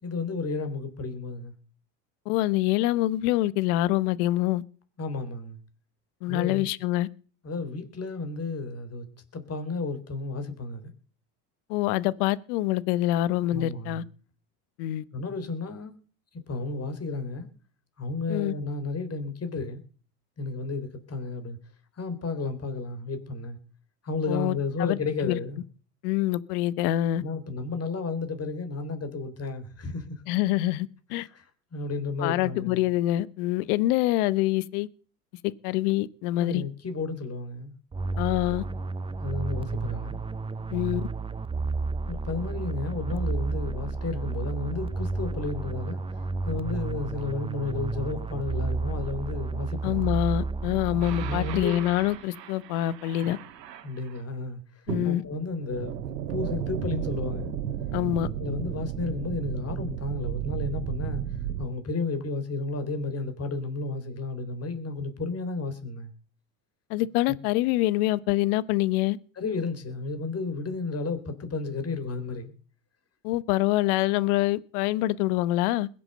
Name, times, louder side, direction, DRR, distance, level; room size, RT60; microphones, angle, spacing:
voice 1, 0.0-1.5 5.0-5.6 6.3-6.7 7.4-9.1 9.3-10.9 13.5-14.0 15.1-15.9 16.5-17.5 18.0-19.8 20.4-21.6 22.0-23.6 24.0-25.6 27.2-30.2 31.2-32.9 36.4-37.7 39.2-40.2 42.0-46.0 46.4-50.1 51.2-51.9 53.8-55.9 56.3-57.5 58.4-61.2 61.6-66.1 67.3-67.4 69.4-72.5, left 3 dB, 30° left, 3.9 m, -32 dB
voice 2, 2.3-4.6 6.2-7.1 11.7-14.0 14.8-15.0 18.3-18.5 24.3-25.0 25.2-25.4 26.0-27.2 30.3-31.3 32.2-34.9 35.4-36.6 38.2-38.6 40.7-41.0 49.8-53.4 54.9-55.2 57.9-58.3 66.9-69.2 73.2-75.9, left 15 dB, 65° left, 1.2 m, -25 dB
sound 1, 37.9-52.0, right 3 dB, 10° right, 0.6 m, -31 dB
sound 2, 51.0-54.2 54.9-61.7, right 10 dB, 85° right, 1.9 m, -34 dB
21.0 x 8.4 x 6.7 m
hypercardioid pair, 80°, 48 cm